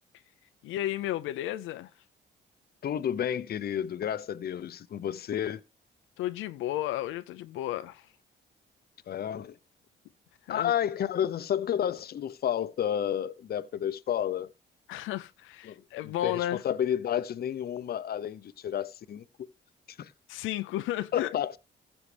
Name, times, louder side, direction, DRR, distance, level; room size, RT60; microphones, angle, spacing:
voice 1, 0.6-1.9 6.2-8.1 10.5-10.7 14.9-16.6 20.3-21.3, left 14 dB, 90° left, 0.5 m, -33 dB
voice 2, 2.8-5.6 9.1-9.6 10.5-14.5 15.6-19.2 19.9-20.1 21.1-21.6, left 9 dB, 50° left, 0.6 m, -31 dB
15.0 x 7.0 x 3.3 m
cardioid pair, 90°, 20 cm